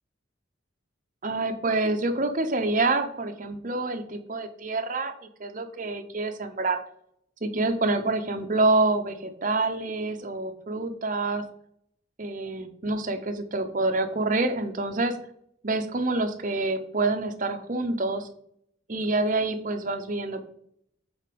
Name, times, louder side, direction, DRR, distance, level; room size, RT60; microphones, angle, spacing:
voice 1, 1.2-5.1 5.4-6.8 7.4-11.4 12.2-15.2 15.6-18.3 18.9-20.4, right 2 dB, 40° right, 5 dB, 0.8 m, -27 dB
8.0 x 3.4 x 5.2 m, 0.70 s
head